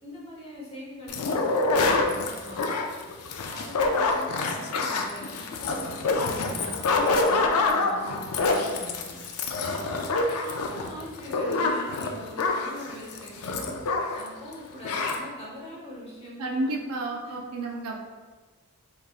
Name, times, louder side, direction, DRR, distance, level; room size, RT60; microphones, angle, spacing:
voice 1, 0.0-3.1 3.5-9.8 10.3-13.8 14.1-16.9 17.2-17.4, equal, 25° left, -6 dB, 1.1 m, -42 dB
sound 1, 1.1-14.3 14.5-14.6 14.8-15.2, left 3 dB, 75° left, 0.4 m, -26 dB
voice 2, 16.4-18.0, right 2 dB, 70° right, 1 dB, 0.5 m, -31 dB
3.9 x 3.5 x 2.4 m, 1.4 s
head